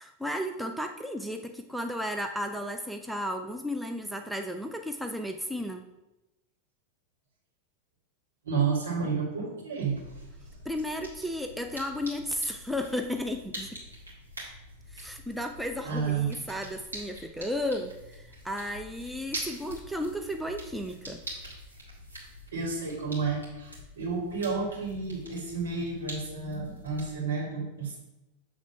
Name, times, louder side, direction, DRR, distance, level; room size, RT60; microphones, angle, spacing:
voice 1, 0.0-5.8 10.6-13.8 14.9-21.2, equal, 5° right, 5 dB, 0.4 m, -34 dB
voice 2, 8.4-10.0 15.8-16.3 22.5-28.0, right 5 dB, 65° right, -4 dB, 2.4 m, -31 dB
sound 1, 9.8-27.2, right 1 dB, 85° right, 1.8 m, -45 dB
7.2 x 3.4 x 5.5 m, 0.98 s
figure-of-eight pair, 90°, 0 cm